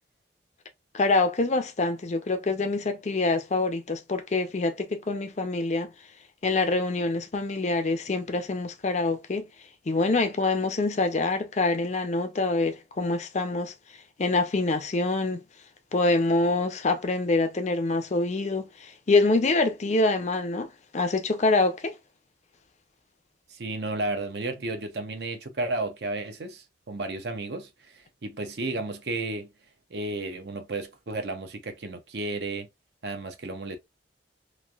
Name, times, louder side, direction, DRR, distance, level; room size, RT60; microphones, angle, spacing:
voice 1, 0.9-5.9 6.4-9.5 9.9-13.7 14.2-15.4 15.9-21.9, left 3 dB, 40° left, 0.5 m, -25 dB
voice 2, 23.5-29.5 29.9-32.7 33.0-33.8, right 2 dB, 60° right, 0.7 m, -33 dB
3.1 x 2.5 x 2.3 m
head